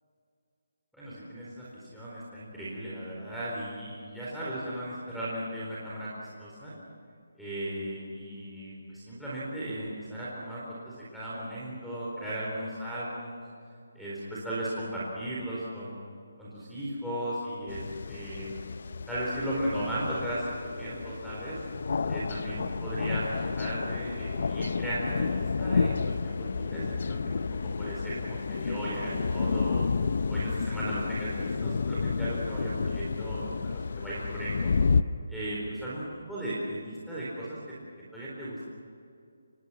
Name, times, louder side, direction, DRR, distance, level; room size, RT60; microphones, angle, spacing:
voice 1, 0.9-6.7 7.4-13.4 13.9-15.9 16.4-17.8 18.1-18.6 19.1-20.4 20.8-21.6 22.1-27.5 27.8-29.9 30.3-34.7 35.3-37.6 38.1-38.7, right 1 dB, ahead, -9 dB, 4.3 m, -36 dB
sound 1, 17.7-35.0, left 4 dB, 55° left, 0.7 m, -31 dB
26.0 x 22.0 x 5.9 m, 2.4 s
hypercardioid pair, 170°, 0 cm